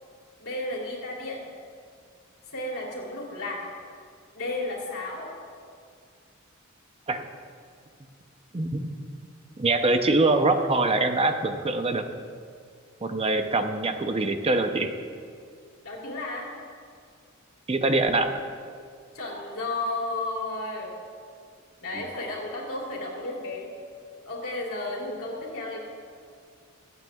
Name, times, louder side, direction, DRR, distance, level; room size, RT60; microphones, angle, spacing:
voice 1, 0.4-1.4 2.5-3.6 4.3-5.3 15.8-16.5 19.1-20.9 21.8-23.7 24.2-25.8, left 2 dB, 90° left, -2 dB, 2.9 m, -33 dB
voice 2, 8.5-8.9 9.6-12.0 13.0-14.9 17.7-18.3 21.9-22.0, right 2 dB, 30° right, 6 dB, 0.7 m, -24 dB
23.5 x 9.0 x 2.4 m, 2.2 s
head